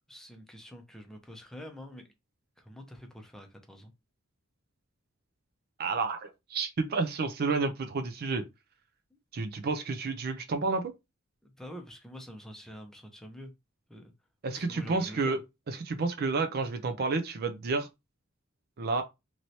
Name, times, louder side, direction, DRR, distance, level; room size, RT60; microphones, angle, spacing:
voice 1, 0.1-2.0 2.6-3.9 11.4-13.5 13.9-14.1 14.5-15.4, equal, ahead, 0.6 m, -46 dB
voice 2, 5.8-8.4 9.3-10.9 14.4-15.4 15.7-17.9 18.8-19.0, right 3 dB, 50° right, 0.4 m, -30 dB
3.0 x 3.0 x 2.6 m
head